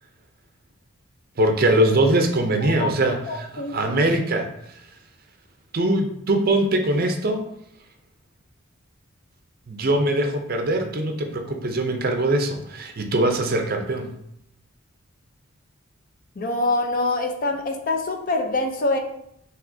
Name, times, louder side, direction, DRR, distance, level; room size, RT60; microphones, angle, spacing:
voice 1, 1.4-4.5 5.7-7.5 9.7-14.1, right 1 dB, 45° right, 5 dB, 0.5 m, -22 dB
voice 2, 3.3-3.8 16.4-19.0, left 2 dB, 40° left, 4 dB, 0.5 m, -25 dB
5.8 x 3.0 x 2.6 m, 0.77 s
head